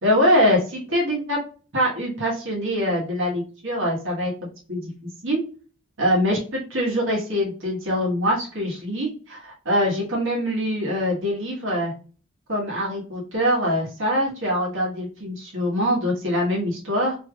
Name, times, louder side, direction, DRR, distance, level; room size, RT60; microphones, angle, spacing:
voice 1, 0.0-1.4 1.7-4.3 4.7-4.9 5.2-5.4 6.0-11.9 12.5-17.2, equal, 60° right, -3 dB, 1.4 m, -23 dB
3.3 x 3.1 x 2.3 m, 0.38 s
head